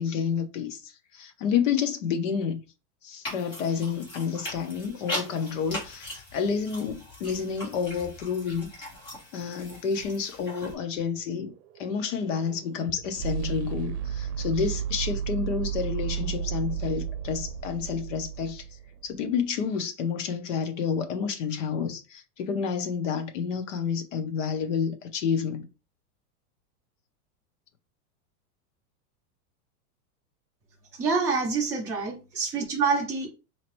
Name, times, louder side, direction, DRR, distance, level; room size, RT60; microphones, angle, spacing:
voice 1, 0.0-2.6 3.0-8.7 9.3-11.5 11.8-18.6 19.0-25.7, left 6 dB, 50° left, 0.8 m, -29 dB
sound 1, 3.2-10.7, left 1 dB, 20° left, 2.0 m, -40 dB
sound 2, 11.0-19.1, right 8 dB, 75° right, 0.7 m, -33 dB
voice 2, 30.9-33.3, right 4 dB, 5° right, 0.6 m, -26 dB
4.2 x 2.8 x 3.0 m
supercardioid pair, 180°, 47 cm